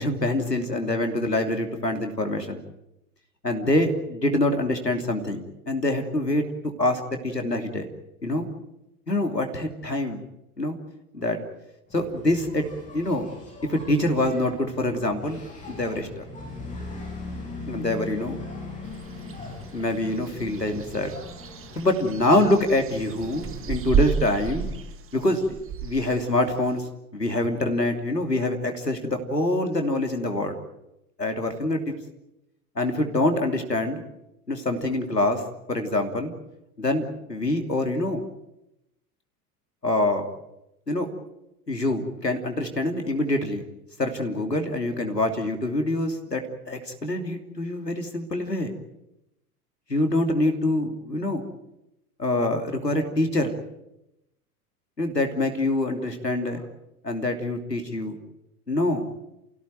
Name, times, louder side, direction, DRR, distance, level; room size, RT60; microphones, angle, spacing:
voice 1, 0.0-2.6 3.4-6.5 6.8-7.9 8.2-8.5 9.1-10.2 10.6-10.8 11.1-11.4 11.9-12.6 12.9-13.3 13.6-15.4 15.7-16.2 17.7-18.4 19.7-21.1 21.7-24.7 25.1-25.6 25.8-26.8 27.1-30.6 31.2-31.8 32.7-34.0 34.5-35.4 35.7-36.3 36.8-38.2 39.8-40.3 40.9-41.1 41.7-43.6 44.0-48.7 49.9-51.4 52.2-53.5 55.0-56.6 57.0-58.2 58.7-59.1, left 1 dB, 90° left, 5 dB, 3.1 m, -25 dB
Engine, 11.9-24.9, left 2 dB, 15° left, 7.9 m, -40 dB
sound 1, 18.8-26.8, right 7 dB, 25° right, 1.9 m, -32 dB
29.0 x 16.5 x 9.0 m, 0.89 s
figure-of-eight pair, 85°, 47 cm